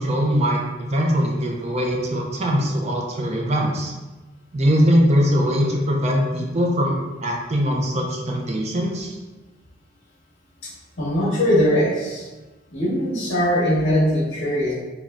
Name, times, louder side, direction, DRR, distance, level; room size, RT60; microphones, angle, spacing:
voice 1, 0.0-3.9 4.5-7.0 7.2-9.2, equal, 35° right, -1 dB, 0.5 m, -21 dB
voice 2, 11.0-12.3 12.7-14.7, equal, 60° left, -8 dB, 1.3 m, -20 dB
5.1 x 2.3 x 2.5 m, 1.2 s
head